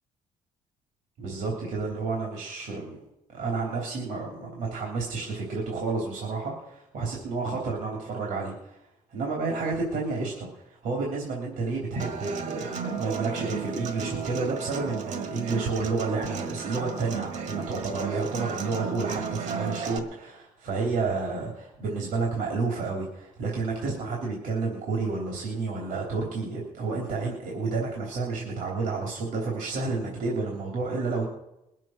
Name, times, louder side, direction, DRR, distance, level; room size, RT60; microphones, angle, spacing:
voice 1, 1.2-3.0 3.3-8.8 9.1-31.2, right 3 dB, 80° right, -1 dB, 3.3 m, -30 dB
Human voice / Acoustic guitar, 12.0-20.0, right 6 dB, 60° right, 1.5 m, -34 dB
21.5 x 7.6 x 6.2 m, 0.88 s
cardioid pair, 165°, 14 cm